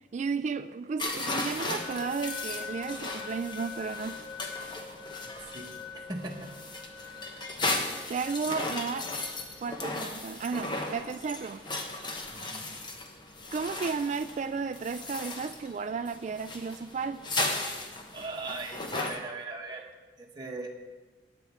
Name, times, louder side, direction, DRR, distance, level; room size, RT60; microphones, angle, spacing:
voice 1, 0.1-4.2 8.1-9.1 9.6-11.6 13.5-17.2, right 5 dB, 40° right, 12 dB, 0.3 m, -33 dB
sound 1, 1.0-19.2, left 2 dB, 25° left, 1.1 m, -36 dB
sound 2, 1.8-9.8, left 5 dB, 75° left, 1.3 m, -44 dB
voice 2, 6.1-6.5 12.3-12.7 18.1-19.8 20.2-20.7, right 3 dB, 25° right, -1 dB, 1.5 m, -38 dB
16.0 x 10.0 x 3.6 m, 1.3 s
head